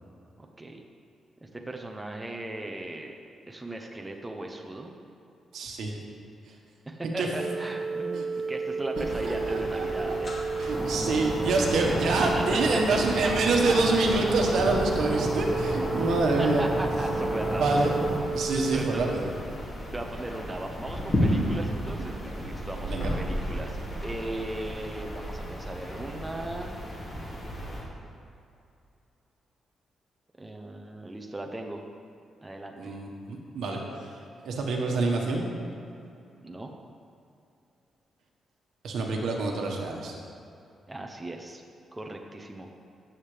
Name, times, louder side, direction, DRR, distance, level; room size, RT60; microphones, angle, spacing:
voice 1, 0.4-0.8 1.4-3.2 3.5-4.9 6.9-10.4 12.2-12.8 13.2-14.4 16.1-18.0 18.7-19.2 19.9-26.8 30.4-31.8 32.4-33.0 36.4-36.7 40.9-41.6 41.9-42.7, right 1 dB, 10° right, 2 dB, 0.7 m, -37 dB
voice 2, 5.5-5.9 7.2-7.3 8.1-8.2 9.0-10.1 10.6-16.6 17.6-17.9 18.3-19.3 22.9-23.1 32.8-33.8 34.4-35.4 38.8-40.1, right 3 dB, 75° right, 1 dB, 1.3 m, -27 dB
sound 1, 7.4-18.8, right 4 dB, 50° right, 1.1 m, -32 dB
sound 2, 8.9-27.8, equal, 35° left, 2.3 m, -34 dB
sound 3, 10.7-18.2, equal, 15° left, 1.8 m, -34 dB
15.5 x 7.3 x 3.3 m, 2.6 s
cardioid pair, 145°, 0 cm